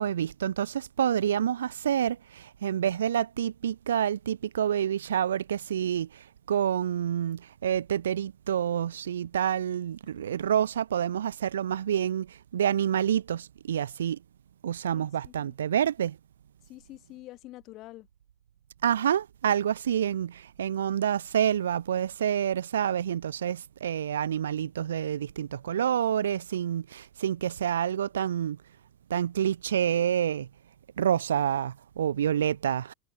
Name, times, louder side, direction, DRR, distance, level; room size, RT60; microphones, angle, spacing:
voice 1, 0.0-14.2 14.6-16.2 18.8-28.6 29.1-30.5 31.0-32.9, right 9 dB, 70° right, 1.0 m, -28 dB
voice 2, 14.9-15.5 16.6-18.1, left 17 dB, 45° left, 4.5 m, -47 dB
figure-of-eight pair, 85°, 0 cm